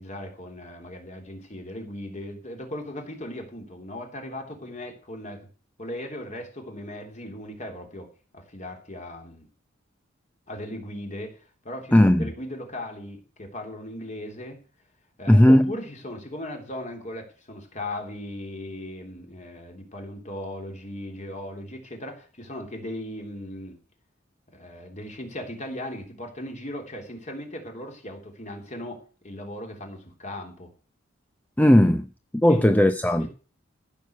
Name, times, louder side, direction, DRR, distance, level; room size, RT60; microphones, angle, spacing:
voice 1, 0.0-5.5 5.8-9.5 10.5-14.6 15.2-23.8 24.5-30.7 32.5-32.6 33.2-33.3, left 1 dB, 40° left, 3.3 m, -38 dB
voice 2, 11.9-12.3 15.3-15.7 31.6-32.0 32.3-33.3, left 1 dB, 10° left, 0.6 m, -17 dB
14.5 x 6.8 x 7.8 m
head